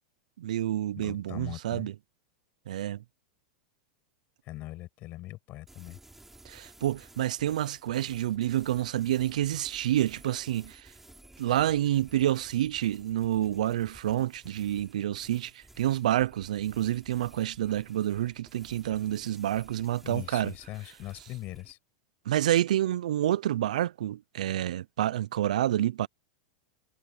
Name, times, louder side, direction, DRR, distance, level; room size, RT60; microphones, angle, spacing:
voice 1, 0.4-1.9 2.7-3.0 6.4-10.9 11.4-20.5 22.3-26.1, right 12 dB, 75° right, 0.7 m, -28 dB
voice 2, 1.0-1.9 4.5-6.0 20.0-21.8, left 17 dB, 45° left, 6.1 m, -41 dB
sound 1, 5.7-21.7, right 2 dB, 5° right, 6.1 m, -55 dB
hypercardioid pair, 105°, 4 cm